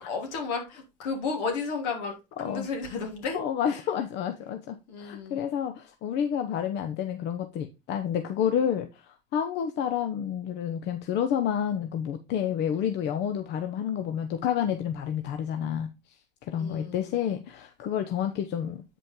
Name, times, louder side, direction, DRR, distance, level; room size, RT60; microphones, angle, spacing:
voice 1, 0.0-3.4 3.6-3.8 4.9-5.4 16.6-17.2, left 4 dB, 80° left, 3.0 m, -33 dB
voice 2, 3.3-15.9 16.5-18.8, left 9 dB, 55° left, 0.9 m, -29 dB
8.1 x 5.1 x 3.7 m
supercardioid pair, 95°, 21 cm